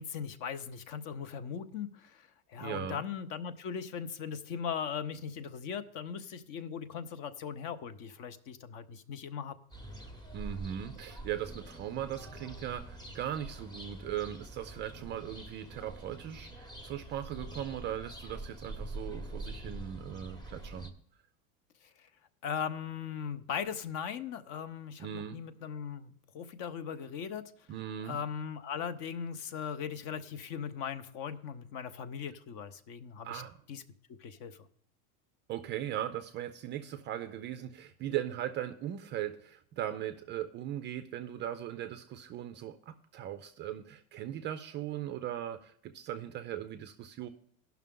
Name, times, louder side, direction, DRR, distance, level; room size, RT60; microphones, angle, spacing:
voice 1, 0.0-9.6 22.4-27.5 28.0-33.4 33.7-33.8 34.2-34.6, left 7 dB, 50° left, 13 dB, 0.8 m, -39 dB
voice 2, 2.6-3.0 10.3-20.9 25.0-25.4 27.7-28.2 33.2-33.6 35.5-47.3, right 11 dB, 30° right, 9 dB, 0.3 m, -39 dB
sound 1, 9.7-20.9, right 2 dB, 10° left, 0.9 m, -45 dB
16.5 x 5.9 x 3.7 m, 0.64 s
supercardioid pair, 135°, 43 cm